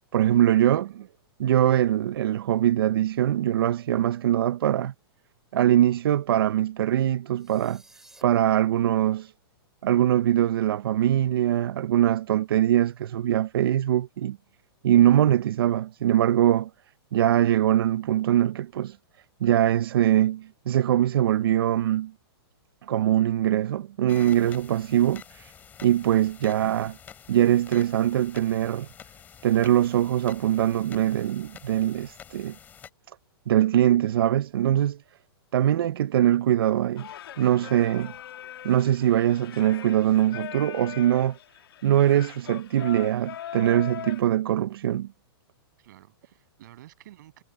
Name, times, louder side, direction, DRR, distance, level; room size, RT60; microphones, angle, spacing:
voice 1, 0.1-0.9 1.4-4.9 5.5-7.8 8.2-9.3 9.8-14.4 14.8-16.7 17.1-19.0 19.4-22.1 22.9-25.5 25.8-27.0 27.3-28.9 29.4-32.5 33.5-35.0 35.5-37.1 37.4-38.1 38.6-41.4 41.8-45.1, right 11 dB, 60° right, 0.6 m, -22 dB
sound 1, 7.3-8.2, right 2 dB, 5° right, 4.6 m, -54 dB
sound 2, 24.1-32.9, left 8 dB, 10° left, 4.0 m, -48 dB
Singing, 37.0-44.2, left 11 dB, 60° left, 1.9 m, -41 dB
voice 2, 45.8-47.4, right 14 dB, 45° right, 7.4 m, -51 dB
hypercardioid pair, 170°, 14 cm